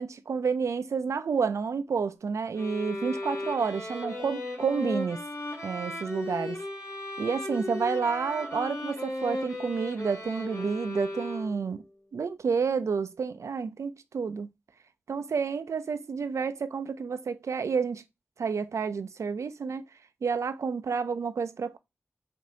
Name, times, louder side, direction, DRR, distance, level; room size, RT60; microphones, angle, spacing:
voice 1, 0.0-5.2 5.6-6.6 7.2-11.8 12.1-14.5 15.1-18.0 18.4-19.8 20.2-21.8, right 5 dB, 90° right, 0.4 m, -30 dB
sound 1, 2.5-11.8, left 1 dB, 80° left, 2.0 m, -36 dB
5.1 x 2.6 x 2.7 m
cardioid pair, 45°, 5 cm